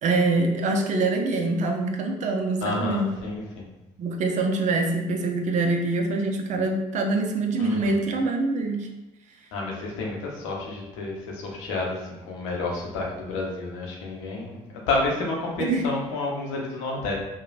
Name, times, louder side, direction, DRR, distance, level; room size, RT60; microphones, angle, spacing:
voice 1, 0.0-3.1 4.0-8.9 15.6-15.9, right 3 dB, 50° right, 4 dB, 0.5 m, -24 dB
voice 2, 2.6-3.7 7.6-7.9 9.5-17.1, left 2 dB, 80° left, -1 dB, 0.7 m, -30 dB
3.0 x 2.2 x 2.5 m, 0.98 s
hypercardioid pair, 50°, 15 cm